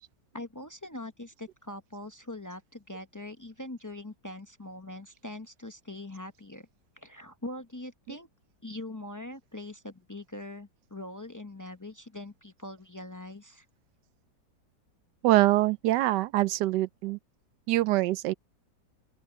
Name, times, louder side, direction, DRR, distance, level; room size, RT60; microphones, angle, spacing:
voice 1, 0.3-6.7 7.0-8.3 8.6-13.6, left 1 dB, 30° left, 0.3 m, -42 dB
voice 2, 15.2-17.2 17.7-18.3, right 16 dB, 80° right, 1.2 m, -24 dB
open air
omnidirectional pair, 1.9 m